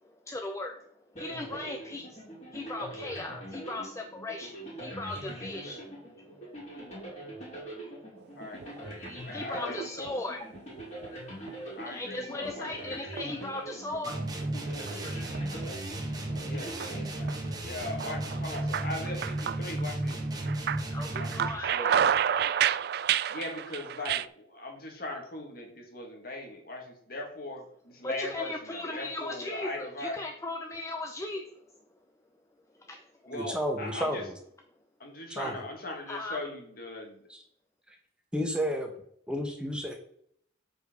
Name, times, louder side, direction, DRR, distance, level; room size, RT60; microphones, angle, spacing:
voice 1, 0.3-0.8 1.1-2.2 2.5-5.8 8.8-8.9 9.3-10.5 11.5-14.2 14.6-15.0 16.5-16.6 20.9-21.9 22.3-22.5 28.0-31.4 32.9-33.0 36.1-36.4, left 2 dB, 15° left, 3 dB, 0.6 m, -37 dB
sound 1, 1.1-17.7, right 1 dB, 35° left, 3.2 m, -43 dB
sound 2, 8.4-9.1 9.5-10.2 10.5-11.1 11.5-11.6 12.5-13.5 13.9-14.9 15.3-15.4 16.3-16.9 17.3-17.5 17.8-20.1 20.4-24.3, right 9 dB, 55° right, 0.3 m, -30 dB
voice 2, 9.1-10.1 11.8-12.7 16.4-20.2 21.2-21.3 21.7-22.1 23.3-27.6 27.9-30.1 33.3-34.2 35.0-37.2, left 2 dB, 55° left, 1 dB, 2.1 m, -39 dB
sound 3, 14.0-21.7, right 1 dB, 20° right, 1.7 m, -34 dB
voice 3, 33.3-34.4 35.3-35.7 37.3-37.4 38.3-38.9 39.3-39.9, equal, 5° right, 3 dB, 1.1 m, -31 dB
7.7 x 5.0 x 5.2 m, 0.67 s
head